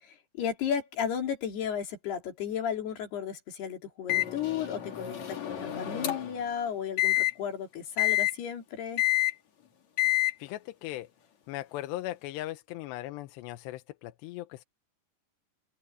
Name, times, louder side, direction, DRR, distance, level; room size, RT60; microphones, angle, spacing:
voice 1, 0.0-9.0, left 8 dB, 70° left, 5.1 m, -34 dB
Microwave oven, 4.1-6.4 7.0-7.3 8.0-8.3 9.0-9.3 10.0-10.3, left 15 dB, 45° left, 3.2 m, -28 dB
voice 2, 10.4-11.1 11.5-14.6, left 15 dB, 85° left, 3.0 m, -38 dB
omnidirectional pair, 4.9 m